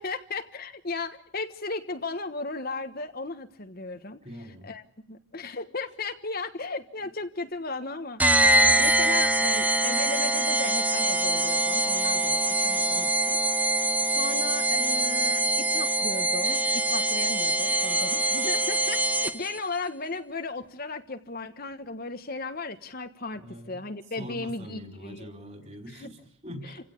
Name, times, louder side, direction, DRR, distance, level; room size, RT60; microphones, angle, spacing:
voice 1, 0.0-4.2 4.6-8.2 8.7-13.6 14.0-23.4 23.7-25.3 25.9-26.1 26.6-26.9, left 3 dB, 45° left, 8 dB, 1.4 m, -36 dB
voice 2, 4.2-4.7 23.4-23.8 24.2-26.9, equal, 30° right, 6 dB, 4.6 m, -43 dB
sound 1, 8.2-19.6, right 1 dB, 5° right, 0.9 m, -24 dB
29.0 x 16.5 x 8.5 m, 0.69 s
head